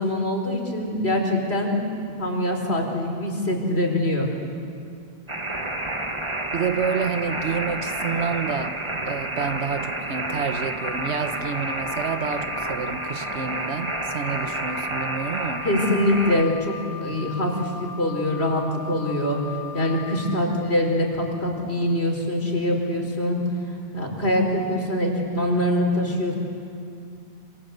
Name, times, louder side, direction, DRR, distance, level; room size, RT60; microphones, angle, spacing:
voice 1, 0.0-1.8 2.2-4.3 15.6-19.4 19.7-23.4 23.9-26.3, left 1 dB, 75° left, 4.7 m, -24 dB
sound 1, 5.3-16.4, right 2 dB, 25° right, 1.5 m, -30 dB
voice 2, 6.5-8.8 9.0-15.6, right 6 dB, 90° right, 1.4 m, -29 dB
Wind instrument woodwind instrument, 10.7-20.4, left 6 dB, 20° left, 4.0 m, -39 dB
27.0 x 27.0 x 8.2 m
omnidirectional pair, 1.1 m